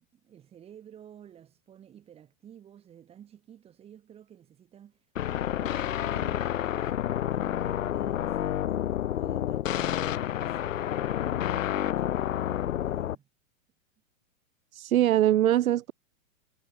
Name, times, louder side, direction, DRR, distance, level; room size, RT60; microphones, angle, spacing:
voice 1, 0.0-7.0 7.3-8.6 9.0-10.8 11.2-13.3, right 9 dB, 15° right, 7.4 m, -52 dB
sound 1, 5.2-13.2, left 11 dB, 65° left, 2.6 m, -29 dB
voice 2, 14.7-15.9, right 13 dB, 75° right, 0.9 m, -22 dB
supercardioid pair, 175°, 42 cm